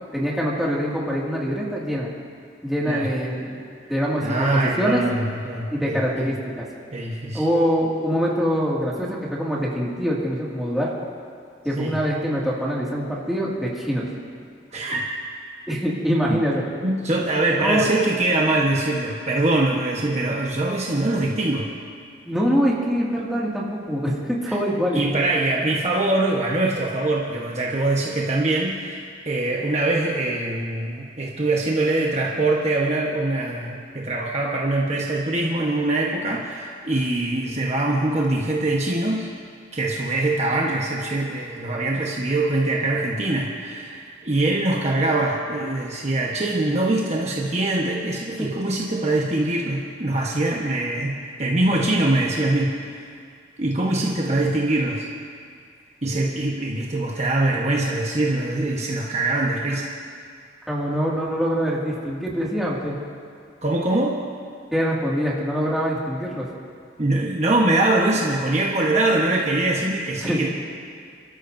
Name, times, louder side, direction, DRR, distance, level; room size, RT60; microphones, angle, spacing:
voice 1, 0.1-2.1 2.6-3.5 3.9-5.0 5.7-6.7 7.3-10.9 11.6-14.1 15.7-16.7 17.6-17.9 22.2-25.0 48.4-48.5 60.7-63.0 64.7-66.4 70.2-70.4, equal, ahead, -6 dB, 2.2 m, -24 dB
voice 2, 4.2-6.0 6.9-7.4 11.8-12.0 14.7-15.1 16.2-16.4 16.8-21.7 24.5-24.6 24.9-39.3 39.7-52.7 53.6-55.1 56.0-59.9 63.6-64.2 67.0-70.5, right 2 dB, 35° right, -3 dB, 1.2 m, -23 dB
29.0 x 13.0 x 2.7 m, 2.2 s
head